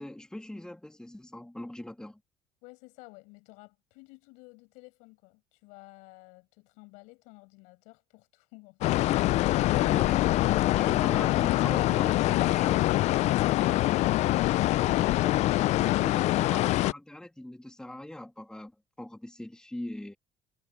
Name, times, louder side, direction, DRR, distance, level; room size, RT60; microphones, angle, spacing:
voice 1, 0.0-2.2 9.8-13.0 15.8-18.7 19.0-20.1, left 1 dB, 5° left, 2.5 m, -42 dB
voice 2, 2.6-9.0 13.4-13.5 14.7-15.2, left 27 dB, 80° left, 7.6 m, -52 dB
sound 1, 8.8-16.9, left 16 dB, 60° left, 0.4 m, -24 dB
supercardioid pair, 80°, 13 cm